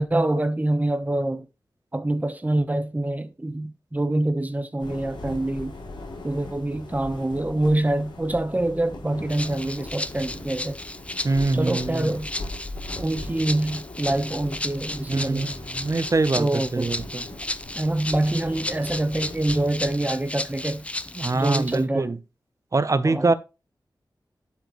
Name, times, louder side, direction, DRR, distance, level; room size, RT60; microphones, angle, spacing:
voice 1, 0.0-1.5 1.9-5.7 6.2-10.8 11.5-12.3 13.0-15.5 16.3-16.9 17.7-20.8 21.3-22.1 23.0-23.3, right 1 dB, 20° right, 1.1 m, -25 dB
sound 1, 4.8-19.9, left 2 dB, 85° left, 4.4 m, -40 dB
Rattle (instrument), 9.3-21.8, left 1 dB, 15° left, 0.5 m, -34 dB
voice 2, 11.2-12.1 15.1-17.2 21.2-22.2 22.7-23.3, right 3 dB, 40° right, 0.8 m, -24 dB
11.5 x 4.5 x 3.1 m
wide cardioid pair, 90°, 8 cm